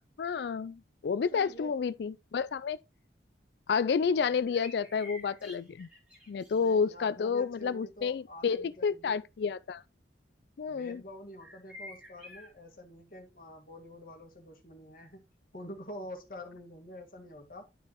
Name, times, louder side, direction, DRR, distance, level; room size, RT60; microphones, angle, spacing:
voice 1, 0.2-2.8 3.7-5.9 6.3-9.8 10.6-11.0, left 6 dB, 65° left, 0.3 m, -30 dB
voice 2, 1.1-1.7 4.1-4.6 6.5-9.2 10.7-15.2 15.5-17.7, left 1 dB, 50° left, 1.7 m, -47 dB
sound 1, 4.3-6.8 11.4-12.5, left 1 dB, 5° right, 2.3 m, -49 dB
11.5 x 4.8 x 3.0 m
head